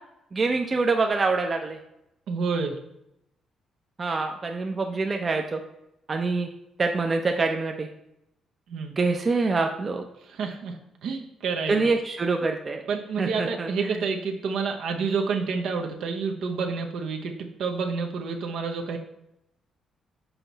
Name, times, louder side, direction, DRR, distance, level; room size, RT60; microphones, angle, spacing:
voice 1, 0.3-1.8 4.0-5.6 6.1-6.5 6.8-7.9 9.0-10.0 11.7-12.9 13.2-14.0, right 3 dB, 35° right, 3 dB, 0.6 m, -25 dB
voice 2, 2.3-2.8 8.7-8.9 10.2-11.9 12.9-19.0, right 5 dB, 75° right, 3 dB, 0.8 m, -29 dB
5.7 x 4.5 x 4.0 m, 0.82 s
cardioid pair, 90°, 0 cm